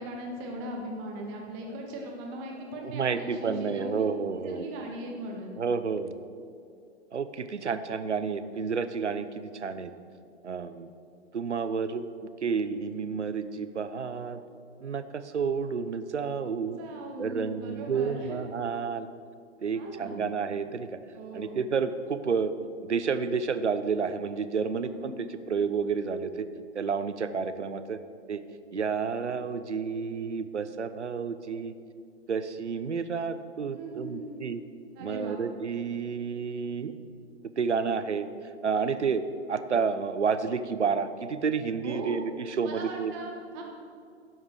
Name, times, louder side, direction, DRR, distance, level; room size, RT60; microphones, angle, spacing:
voice 1, 0.0-4.0 4.3-5.5 16.8-18.4 19.7-20.3 21.1-21.6 24.8-25.3 33.7-34.4 35.0-35.4 41.8-42.2 42.6-43.6, right 1 dB, 35° right, 0 dB, 1.8 m, -39 dB
voice 2, 2.8-4.7 5.6-6.1 7.1-9.9 10.4-10.9 11.3-12.0 12.4-14.4 14.8-16.8 17.2-19.1 19.6-20.9 21.3-22.5 22.8-26.5 26.7-28.0 28.3-28.4 28.7-31.7 32.3-34.6 35.0-36.9 37.6-38.3 38.6-39.2 39.5-43.1, right 5 dB, 80° right, 11 dB, 0.8 m, -30 dB
12.0 x 7.3 x 6.2 m, 2.3 s
figure-of-eight pair, 110°, 34 cm